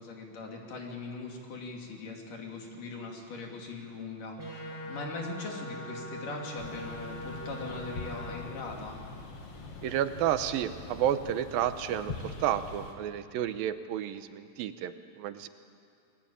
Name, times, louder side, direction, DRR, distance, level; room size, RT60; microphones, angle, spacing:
voice 1, 0.0-9.0, left 3 dB, 60° left, 1 dB, 4.5 m, -41 dB
sound 1, 4.4-8.3, equal, 15° right, 8.2 m, -41 dB
sound 2, 6.6-12.9, left 3 dB, 45° left, 2.8 m, -44 dB
voice 2, 9.8-15.5, right 10 dB, 80° right, 10 dB, 2.6 m, -31 dB
29.5 x 20.5 x 8.7 m, 2.5 s
omnidirectional pair, 4.2 m